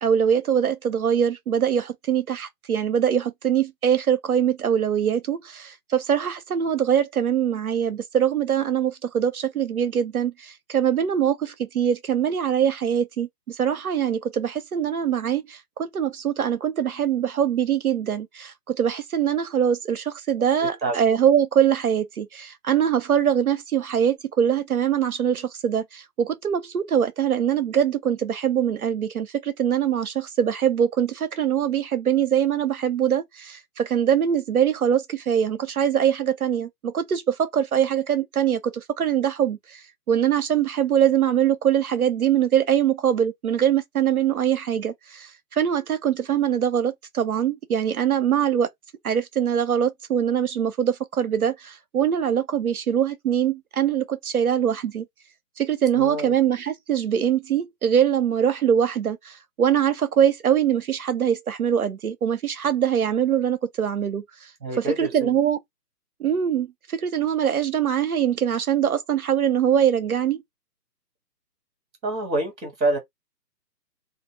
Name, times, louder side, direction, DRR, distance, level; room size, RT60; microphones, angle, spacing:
voice 1, 0.0-48.7 49.0-55.1 55.6-64.5 64.8-65.6 66.2-70.4, right 9 dB, 60° right, 0.5 m, -23 dB
voice 2, 20.6-20.9 56.0-56.3 64.6-65.3 72.0-73.0, right 2 dB, ahead, 0.6 m, -27 dB
2.3 x 2.0 x 3.3 m
figure-of-eight pair, 145°, 50 cm